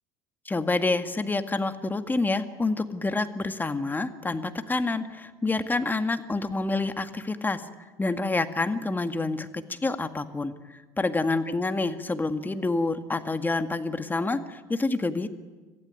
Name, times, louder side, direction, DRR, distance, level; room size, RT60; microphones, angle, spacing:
voice 1, 0.5-7.7 8.0-15.3, left 3 dB, 15° left, 9 dB, 1.8 m, -28 dB
25.5 x 15.0 x 9.5 m, 1.3 s
hypercardioid pair, 75°, 11 cm